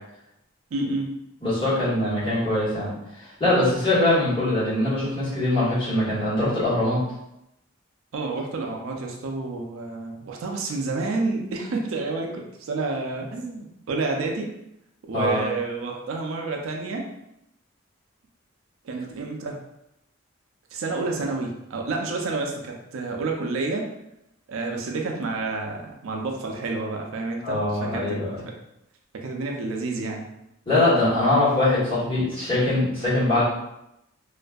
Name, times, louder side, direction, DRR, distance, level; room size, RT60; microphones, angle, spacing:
voice 1, 0.7-1.1 8.1-14.5 15.0-17.1 18.8-19.6 20.7-23.9 24.5-28.2 29.1-30.3, right 3 dB, 70° right, 1 dB, 0.4 m, -29 dB
voice 2, 1.4-2.9 3.4-7.0 15.1-15.4 27.4-28.3 30.7-33.4, left 2 dB, 25° left, -12 dB, 1.3 m, -22 dB
2.5 x 2.5 x 2.2 m, 0.83 s
head